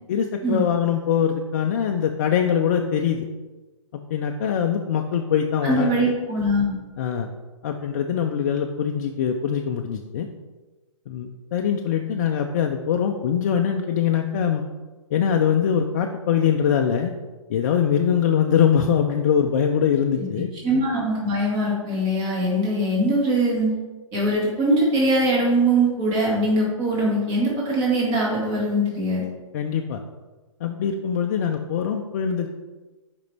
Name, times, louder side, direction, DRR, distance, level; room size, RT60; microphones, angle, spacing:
voice 1, 0.1-3.3 3.9-6.1 7.0-7.3 7.6-10.3 11.1-14.6 15.1-17.1 17.5-20.5 29.5-30.0 30.6-32.5, left 8 dB, 30° left, 2 dB, 0.4 m, -23 dB
voice 2, 5.6-6.8 20.2-20.3 20.6-23.7 24.1-29.2, right 1 dB, 25° right, -5 dB, 2.0 m, -22 dB
6.7 x 5.1 x 3.4 m, 1.2 s
hypercardioid pair, 155°, 17 cm